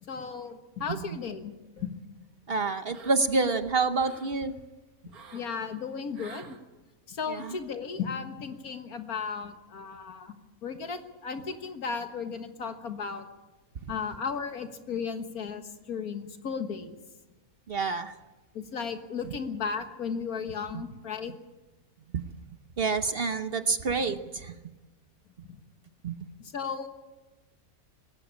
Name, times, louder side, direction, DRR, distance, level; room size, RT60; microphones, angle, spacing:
voice 1, 0.0-1.9 5.3-6.6 7.1-10.3 10.6-13.2 13.9-16.9 18.5-21.3 25.4-25.6 26.4-26.9, left 6 dB, 80° left, 7 dB, 2.0 m, -35 dB
voice 2, 2.5-4.6 7.3-7.6 13.8-13.9 17.7-18.1 19.2-19.3 20.7-20.8 22.1-22.2 22.8-24.6 26.0-26.2, right 4 dB, 45° right, 10 dB, 0.9 m, -28 dB
sound 1, 2.9-3.4 3.8-4.3 5.1-5.5 6.1-6.6 7.3-7.7, right 5 dB, 85° right, 2.1 m, -49 dB
19.5 x 16.0 x 8.6 m, 1.1 s
omnidirectional pair, 1.5 m